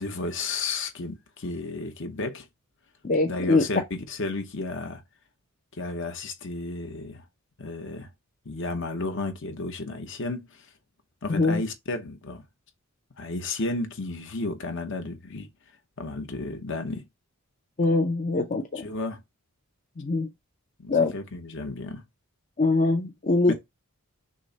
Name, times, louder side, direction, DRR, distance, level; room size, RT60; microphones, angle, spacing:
voice 1, 0.0-2.5 3.3-5.0 5.7-7.2 7.6-8.1 8.4-10.7 11.2-12.4 13.2-15.5 16.0-17.1 18.7-19.2 20.8-22.0 23.5-23.6, left 3 dB, 55° left, 1.0 m, -33 dB
voice 2, 3.0-3.6 11.3-11.6 17.8-18.8 20.0-20.3 20.9-21.1 22.6-23.5, left 3 dB, 35° left, 0.5 m, -23 dB
6.2 x 2.1 x 3.9 m
head